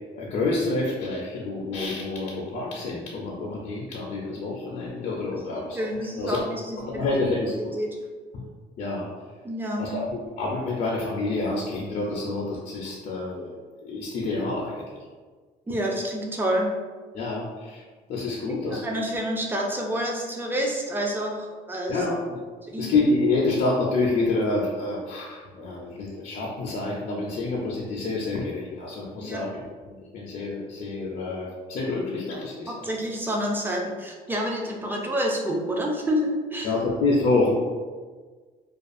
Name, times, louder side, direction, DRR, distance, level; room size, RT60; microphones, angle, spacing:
voice 1, 0.1-5.9 6.2-6.4 6.8-7.5 8.3-8.4 8.8-9.1 9.8-13.6 13.8-14.8 17.1-17.8 18.1-18.9 21.9-22.4 22.8-29.6 30.1-32.9 36.6-37.5, left 3 dB, 50° left, -3 dB, 0.4 m, -27 dB
voice 2, 5.7-7.1 7.7-7.9 9.4-10.0 15.7-16.7 18.5-22.0 22.7-22.9 29.2-29.5 32.7-36.7, equal, 10° right, 0 dB, 0.4 m, -28 dB
2.4 x 2.3 x 2.5 m, 1.5 s
cardioid pair, 110°, 17 cm